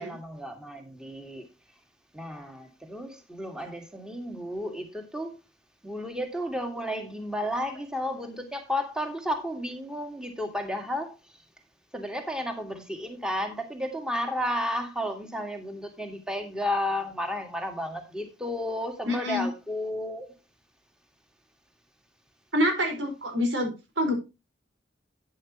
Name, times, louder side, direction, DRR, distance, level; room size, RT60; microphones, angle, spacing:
voice 1, 0.0-1.5 2.1-5.3 5.8-11.2 11.9-20.3, left 1 dB, 5° right, 1.8 m, -32 dB
voice 2, 19.1-19.5 22.5-24.1, left 1 dB, 85° right, 4.6 m, -27 dB
11.5 x 9.6 x 2.9 m
head